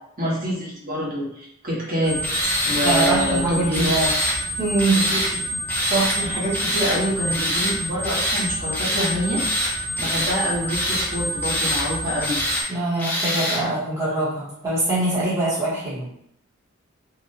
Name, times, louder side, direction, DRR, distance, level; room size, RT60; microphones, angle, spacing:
voice 1, 0.2-2.2 2.6-4.1 5.1-5.2 6.1-12.4, equal, 45° right, -7 dB, 1.0 m, -26 dB
sound 1, 2.0-12.6, equal, 85° right, 0.8 m, -29 dB
Tools, 2.2-3.1 3.7-4.4 4.8-5.3 5.7-6.2 6.5-7.0 7.3-7.8 8.0-8.4 8.7-9.1 9.4-10.4 10.7-11.1 11.4-11.9 12.2-12.6 13.0-13.6, left 1 dB, 10° left, 0.5 m, -25 dB
voice 2, 2.8-3.9 4.6-5.0 5.9-6.3 12.7-16.1, right 2 dB, 15° right, -10 dB, 0.8 m, -23 dB
2.7 x 2.0 x 2.7 m, 0.75 s
head